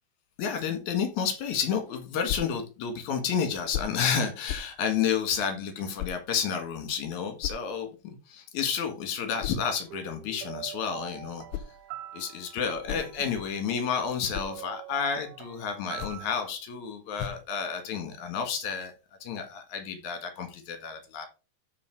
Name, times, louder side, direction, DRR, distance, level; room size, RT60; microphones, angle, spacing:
voice 1, 0.4-11.4 12.1-18.9 19.2-21.3, left 7 dB, 55° left, 6 dB, 2.3 m, -30 dB
sound 1, 2.3-2.6 3.7-4.0 4.5-4.8 6.0-6.2 7.4-7.7 9.4-9.7 11.2-11.8 12.6-13.6 14.0-14.6 15.8-16.3 17.1-17.5, left 10 dB, 80° left, 2.8 m, -37 dB
sound 2, 9.9-16.5, right 13 dB, 90° right, 3.1 m, -44 dB
8.4 x 5.3 x 4.7 m, 0.30 s
omnidirectional pair, 5.5 m